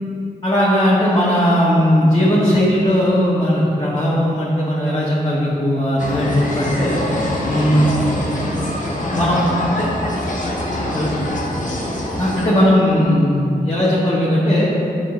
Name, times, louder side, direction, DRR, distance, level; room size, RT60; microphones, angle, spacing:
voice 1, 0.4-7.0 7.5-7.9 9.1-9.4 10.9-11.1 12.2-14.7, equal, 25° left, -8 dB, 1.4 m, -17 dB
sound 1, 6.0-12.5, left 1 dB, 50° left, 1.2 m, -24 dB
8.1 x 3.7 x 5.6 m, 2.8 s
cardioid pair, 70°, 16 cm